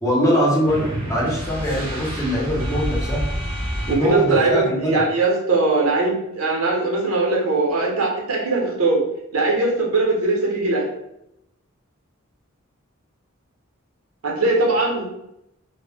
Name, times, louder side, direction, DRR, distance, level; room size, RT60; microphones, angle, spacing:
voice 1, 0.0-3.3 3.8-5.0, equal, 15° left, -4 dB, 0.6 m, -22 dB
sound 1, 0.7-4.5, equal, 25° right, 0.5 m, -28 dB
voice 2, 3.9-9.0 9.3-10.9 14.2-15.0, right 3 dB, 85° right, -2 dB, 0.7 m, -20 dB
2.1 x 2.0 x 3.3 m, 0.83 s
head